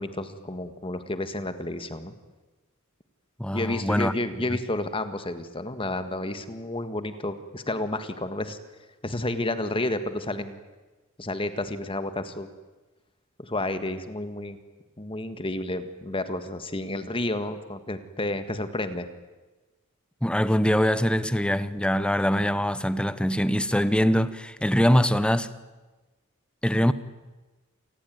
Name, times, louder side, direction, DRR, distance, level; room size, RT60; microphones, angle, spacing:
voice 1, 0.0-2.1 3.5-8.6 9.0-10.6 11.2-12.5 13.4-14.6 15.0-19.1, left 2 dB, 25° left, 1.7 m, -31 dB
voice 2, 3.4-4.1 4.5-4.6 20.2-25.5 26.6-26.9, equal, 5° left, 1.0 m, -23 dB
28.0 x 19.5 x 9.4 m
head